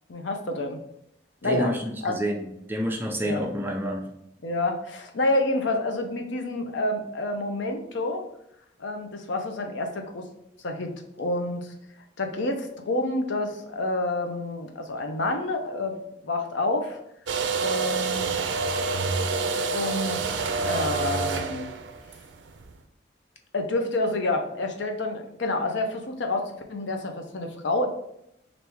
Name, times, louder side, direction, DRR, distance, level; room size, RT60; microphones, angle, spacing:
voice 1, 0.1-0.8 1.4-1.7 2.0-2.2 3.2-3.4 4.4-8.2 8.8-10.3 10.6-10.9 11.2-11.7 12.2-16.0 16.2-17.0 17.6-18.3 19.7-21.7 23.5-27.9, left 2 dB, 75° left, 4 dB, 0.6 m, -28 dB
voice 2, 1.4-4.1, equal, 10° right, 1 dB, 0.5 m, -29 dB
sound 1, 17.3-22.7, right 4 dB, 70° right, 0.4 m, -27 dB
3.4 x 2.6 x 4.6 m, 0.78 s
head